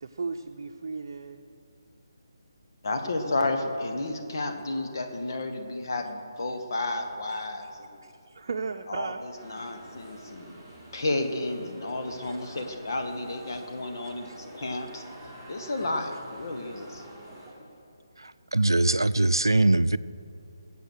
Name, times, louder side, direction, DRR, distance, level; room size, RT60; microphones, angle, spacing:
voice 1, 0.0-1.4 3.9-4.1 7.6-7.7 8.0-9.2 9.6-9.7 12.2-12.4 13.6-13.7 14.2-14.4, right 4 dB, 50° right, 0.7 m, -36 dB
voice 2, 2.8-8.0 8.9-10.6 10.9-15.0 15.5-17.0, left 2 dB, 60° left, 1.9 m, -32 dB
sound 1, 9.4-17.5, right 1 dB, 5° left, 3.8 m, -47 dB
voice 3, 18.5-20.0, right 2 dB, 85° right, 0.5 m, -21 dB
21.5 x 8.4 x 6.5 m
figure-of-eight pair, 150°, 2 cm